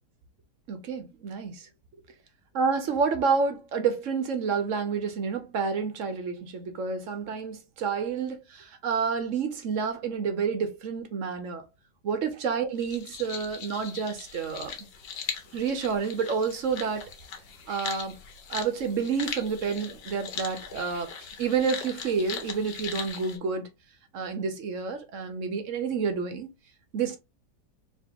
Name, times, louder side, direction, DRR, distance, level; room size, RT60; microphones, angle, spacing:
voice 1, 0.7-1.7 2.5-11.6 12.0-14.9 15.5-17.1 17.7-18.2 18.5-23.7 24.1-26.5 26.9-27.2, right 5 dB, 60° right, 0.9 m, -29 dB
sound 1, 12.8-23.4, left 7 dB, 90° left, 1.6 m, -40 dB
4.3 x 2.9 x 2.8 m
omnidirectional pair, 1.8 m